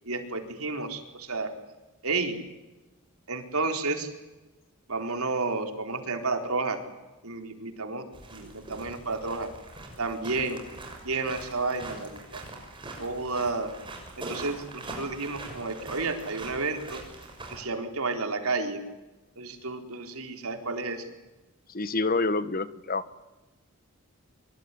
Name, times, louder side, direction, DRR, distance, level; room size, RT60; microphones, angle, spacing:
voice 1, 0.1-1.5 2.0-2.4 3.3-4.1 4.9-6.8 7.2-8.0 8.3-9.5 10.0-10.6 11.0-12.4 13.0-13.7 14.3-17.0 17.5-18.8 19.4-21.0, right 3 dB, 90° right, 5 dB, 4.1 m, -31 dB
sound 1, 8.1-17.6, right 2 dB, 25° right, 6.4 m, -42 dB
voice 2, 21.7-23.0, left 3 dB, 40° left, 14 dB, 1.3 m, -27 dB
25.0 x 23.5 x 9.9 m, 1.1 s
head